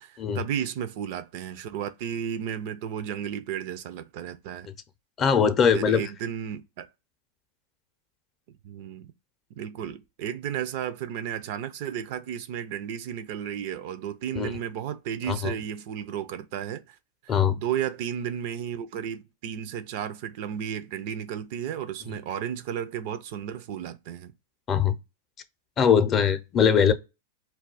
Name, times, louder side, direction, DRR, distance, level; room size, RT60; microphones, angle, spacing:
voice 1, 0.0-4.7 5.7-6.9 8.6-9.1 9.6-17.0 17.2-24.3, right 9 dB, 60° right, 0.4 m, -33 dB
voice 2, 5.2-6.0 14.3-14.5 15.3-15.5 17.3-17.6 24.7-24.9 25.8-26.9, left 7 dB, 30° left, 0.5 m, -21 dB
2.3 x 2.2 x 3.9 m
hypercardioid pair, 120°, 0 cm